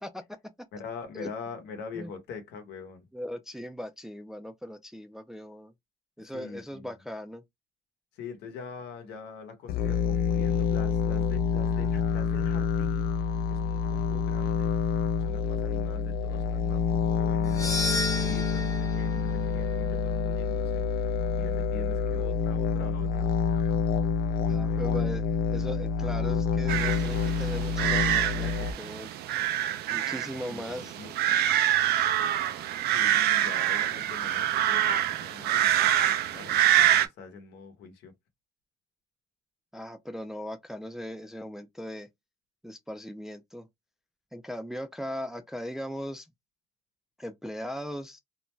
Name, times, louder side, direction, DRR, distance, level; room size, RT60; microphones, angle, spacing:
voice 1, 0.7-3.1 6.2-6.9 8.1-13.2 13.5-14.8 15.2-23.3 24.6-24.8 30.5-31.5 32.8-38.1, left 5 dB, 80° left, 0.9 m, -44 dB
voice 2, 3.1-5.7 6.2-7.4 24.5-25.2 25.5-29.1 29.9-31.0 39.7-42.1 42.6-43.7 44.3-46.3 47.2-48.2, equal, 5° right, 0.3 m, -38 dB
sound 1, 9.7-28.7, left 6 dB, 60° left, 0.4 m, -27 dB
sound 2, 17.4-21.8, left 3 dB, 20° left, 0.8 m, -34 dB
sound 3, 26.7-37.1, right 12 dB, 70° right, 0.4 m, -26 dB
2.5 x 2.2 x 3.0 m
cardioid pair, 110°, 17 cm